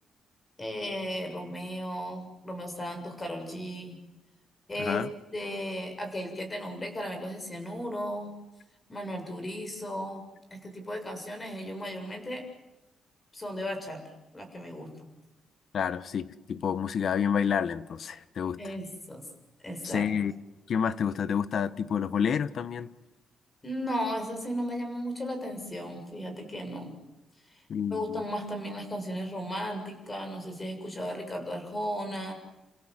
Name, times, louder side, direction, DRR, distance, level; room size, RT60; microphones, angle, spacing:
voice 1, 0.6-4.0 4.7-5.1 5.3-8.4 8.9-10.2 10.5-12.4 13.3-14.0 14.3-15.1 18.6-19.2 19.6-20.1 23.6-26.9 27.5-27.6 27.9-32.3, equal, 20° left, 6.7 m, -35 dB
voice 2, 4.8-5.1 15.7-18.6 19.8-20.3 20.7-22.9 27.7-28.2, left 7 dB, 55° left, 1.2 m, -29 dB
29.0 x 26.5 x 7.6 m
cardioid pair, 135°, 0 cm